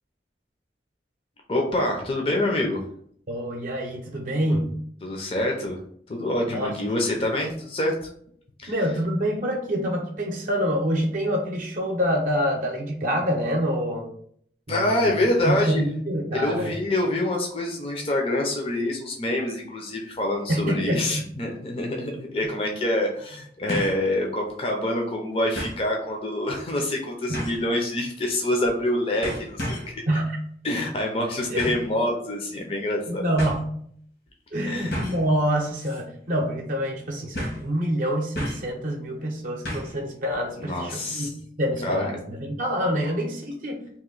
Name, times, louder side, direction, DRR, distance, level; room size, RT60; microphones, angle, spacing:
voice 1, 1.5-2.8 5.0-5.8 6.1-8.1 8.6-8.7 14.7-15.9 16.3-30.0 30.6-33.3 34.6-34.9 40.6-41.3 41.8-42.1, left 1 dB, 35° left, 1 dB, 0.5 m, -26 dB
voice 2, 3.3-4.8 6.5-6.7 8.7-14.1 14.7-15.1 15.4-16.7 20.5-21.3 30.1-30.4 31.5-31.8 33.1-33.7 34.5-41.3 41.6-43.8, equal, 50° right, 0 dB, 0.6 m, -26 dB
sound 1, 21.8-21.9 23.7-24.0 24.5-24.6 25.6-25.8 27.3-27.7 28.6-28.9 29.2-30.0 31.6-31.9 32.9-33.0 33.4-33.6 34.9-35.3 35.8-36.0 36.3-36.4 37.3-37.7 38.4-38.7 39.7-40.0 40.3-40.4, equal, 80° left, 1.3 m, -32 dB
2.9 x 2.6 x 3.8 m, 0.64 s
head